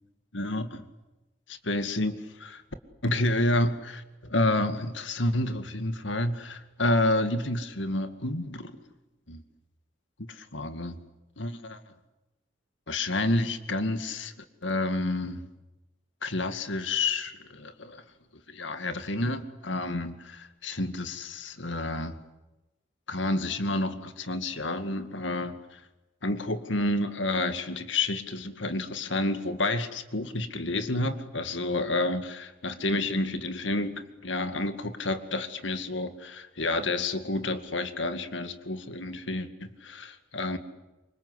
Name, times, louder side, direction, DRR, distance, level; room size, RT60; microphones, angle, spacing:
voice 1, 0.3-0.9 1.5-2.6 3.0-8.8 9.3-9.4 10.2-11.0 11.4-11.8 12.9-14.3 14.6-15.4 16.2-18.0 18.5-22.2 23.1-25.8 26.2-40.6, left 2 dB, 75° left, 10 dB, 2.2 m, -29 dB
27.0 x 25.0 x 8.1 m, 1.0 s
head